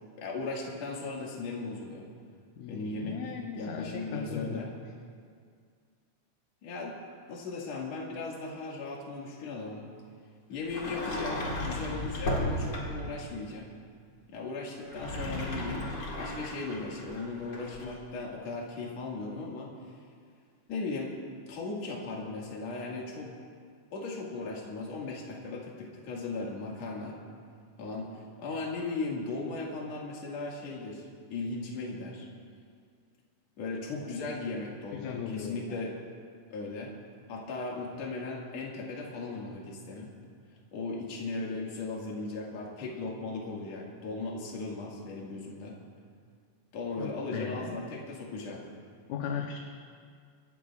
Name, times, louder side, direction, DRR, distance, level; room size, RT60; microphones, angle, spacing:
voice 1, 0.1-2.1 2.7-3.2 3.5-4.7 6.6-7.0 7.3-9.9 10.5-13.7 14.3-15.8 16.1-19.7 20.7-21.2 21.5-23.3 23.9-27.2 27.8-32.3 33.6-36.0 36.5-36.9 37.3-40.1 40.7-45.8 46.7-48.6, left 3 dB, 55° left, -3 dB, 2.9 m, -37 dB
voice 2, 2.6-4.7 34.0-34.1 34.9-35.9 47.0-47.8 49.1-49.6, left 6 dB, 75° left, 2 dB, 2.1 m, -37 dB
Sliding door, 10.6-13.2 14.8-18.0, left 1 dB, 40° left, 2.2 m, -35 dB
26.0 x 13.5 x 2.4 m, 2.1 s
omnidirectional pair, 3.7 m